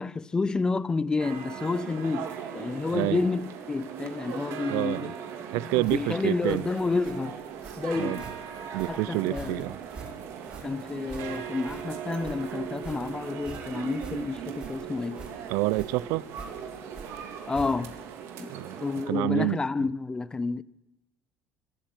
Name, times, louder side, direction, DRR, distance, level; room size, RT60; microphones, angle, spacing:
voice 1, 0.0-5.1 5.5-7.4 7.8-8.2 8.9-9.7 10.6-15.2 17.5-18.0 18.4-18.5 18.8-20.6, left 3 dB, 15° left, 0.6 m, -30 dB
sound 1, 1.2-19.1, right 7 dB, 70° right, 3.3 m, -39 dB
voice 2, 2.9-3.2 4.7-5.1 5.5-6.6 8.0-8.2 8.7-9.8 15.5-16.3 18.5-18.8 19.1-19.6, right 20 dB, 85° right, 0.6 m, -28 dB
sound 2, 5.8-18.1, right 3 dB, 25° right, 6.3 m, -46 dB
24.0 x 13.0 x 9.2 m
cardioid pair, 125°, 5 cm